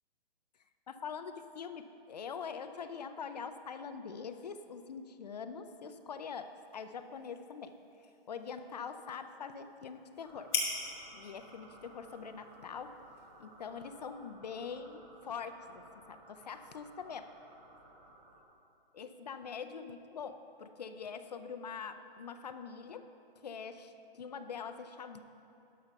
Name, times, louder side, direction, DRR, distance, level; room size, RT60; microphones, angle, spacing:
voice 1, 0.9-7.7 8.0-10.5 11.1-13.0 13.4-15.8 16.1-17.3 18.9-23.1 23.4-25.2, left 6 dB, 45° left, 10 dB, 0.5 m, -44 dB
sound 1, 6.2-13.9, left 4 dB, 25° left, 1.2 m, -44 dB
sound 2, 10.2-18.4, right 2 dB, 20° right, 0.8 m, -57 dB
12.0 x 5.9 x 5.5 m, 2.8 s
hypercardioid pair, 175°, 30 cm